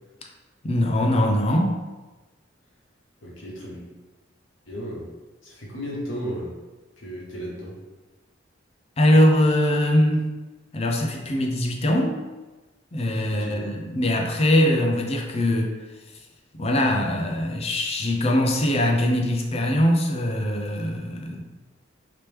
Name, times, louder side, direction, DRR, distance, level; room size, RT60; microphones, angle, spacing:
voice 1, 0.6-1.8 9.0-10.3 10.7-12.2 12.9-15.7 16.5-21.4, left 1 dB, 30° left, 1 dB, 0.5 m, -22 dB
voice 2, 3.2-3.8 4.7-5.1 5.4-6.5 7.0-7.7 13.3-13.7, equal, 85° left, -5 dB, 1.1 m, -34 dB
3.1 x 2.9 x 3.3 m, 1.2 s
head